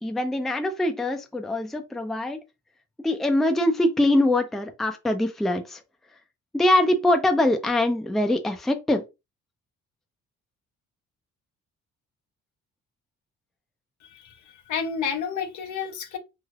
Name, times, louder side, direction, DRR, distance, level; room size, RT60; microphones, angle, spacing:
voice 1, 0.0-2.4 3.0-5.8 6.5-9.0, left 1 dB, ahead, 0.4 m, -23 dB
voice 2, 14.0-16.2, left 6 dB, 75° left, 0.8 m, -31 dB
3.3 x 2.7 x 2.3 m
cardioid pair, 90°, 30 cm